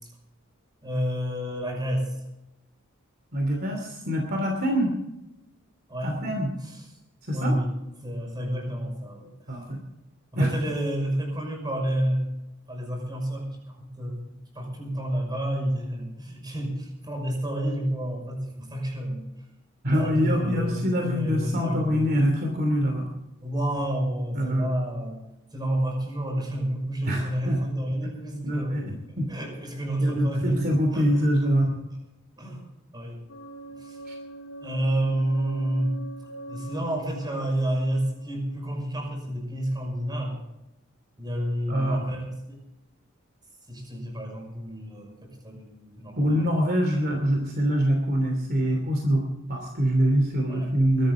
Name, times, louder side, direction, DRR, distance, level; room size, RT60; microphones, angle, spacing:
voice 1, 0.8-2.2 5.9-6.2 6.6-6.8 7.3-9.3 10.3-12.3 12.7-14.2 14.5-19.3 19.9-22.3 23.4-25.2 25.5-28.8 29.3-31.3 31.6-31.7 32.4-33.2 33.7-34.0 34.6-35.9 36.5-40.4 41.2-42.6 43.7-46.5 50.5-50.7, right 1 dB, 20° right, 2 dB, 5.8 m, -29 dB
voice 2, 3.3-4.9 6.0-6.5 7.3-7.6 9.5-9.8 10.4-10.5 19.8-23.1 24.3-24.7 27.1-27.6 28.4-29.3 30.0-31.7 34.1-34.2 41.7-42.0 46.2-49.2 49.5-51.1, equal, 50° right, 2 dB, 2.9 m, -24 dB
sound 1, 33.3-39.1, right 1 dB, 85° left, 2.0 m, -43 dB
22.5 x 13.0 x 3.8 m, 0.93 s
head